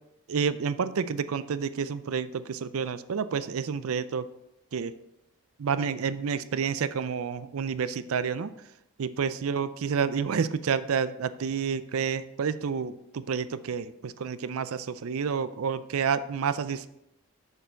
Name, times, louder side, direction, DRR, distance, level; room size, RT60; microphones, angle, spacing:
voice 1, 0.3-4.3 4.7-5.0 5.6-8.5 9.0-16.9, right 6 dB, 70° right, 14 dB, 0.4 m, -29 dB
6.9 x 6.8 x 4.4 m, 0.83 s
head